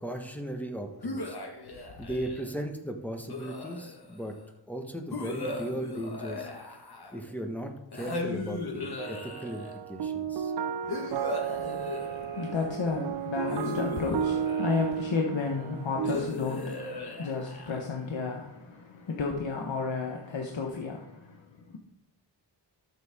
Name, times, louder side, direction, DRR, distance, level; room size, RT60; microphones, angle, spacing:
voice 1, 0.0-1.3 2.0-4.3 4.7-6.5 7.1-10.5, right 1 dB, 5° left, 3 dB, 1.4 m, -37 dB
sound 1, 1.0-2.5 3.3-4.2 5.1-7.3 7.9-9.8 10.9-12.6 13.5-15.1 16.0-18.0, left 2 dB, 55° left, 1.6 m, -37 dB
sound 2, 9.0-16.2, right 8 dB, 65° right, 0.5 m, -33 dB
voice 2, 10.8-21.8, left 4 dB, 80° left, 1 dB, 1.3 m, -33 dB
12.5 x 7.4 x 3.6 m, 0.93 s
wide cardioid pair, 95°, 45 cm